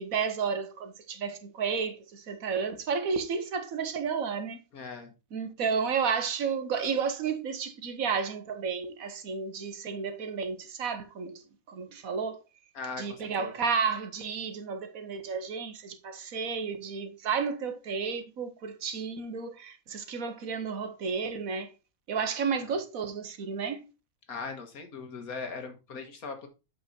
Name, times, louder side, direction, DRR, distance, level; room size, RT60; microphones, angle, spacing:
voice 1, 0.0-4.6 5.3-12.4 13.0-21.7 22.1-23.8, right 6 dB, 75° right, 1.5 m, -32 dB
voice 2, 4.7-5.1 12.7-13.5 22.6-22.7 24.3-26.5, left 4 dB, 80° left, 2.1 m, -39 dB
7.5 x 5.7 x 4.2 m
omnidirectional pair, 1.5 m